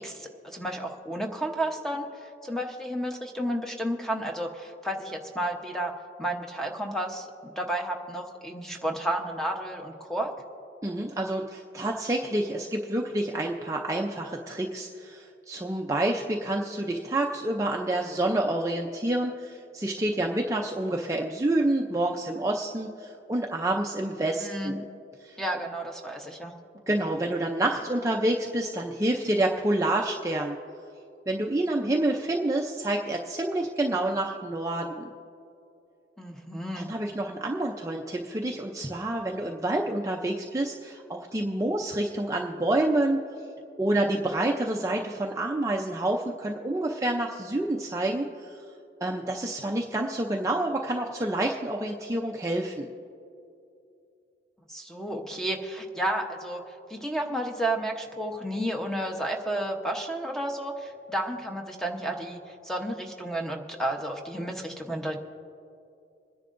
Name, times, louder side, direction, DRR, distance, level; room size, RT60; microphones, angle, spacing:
voice 1, 0.0-10.3 24.4-24.8 25.4-26.5 36.2-36.9 54.7-56.6 56.9-65.2, right 1 dB, 5° left, 2 dB, 0.9 m, -32 dB
voice 2, 10.8-24.8 25.2-25.4 26.9-30.6 31.3-35.1 36.8-43.2 43.8-48.6 49.0-52.9, right 1 dB, 20° right, 0 dB, 0.5 m, -28 dB
27.0 x 10.5 x 2.6 m, 2.6 s
head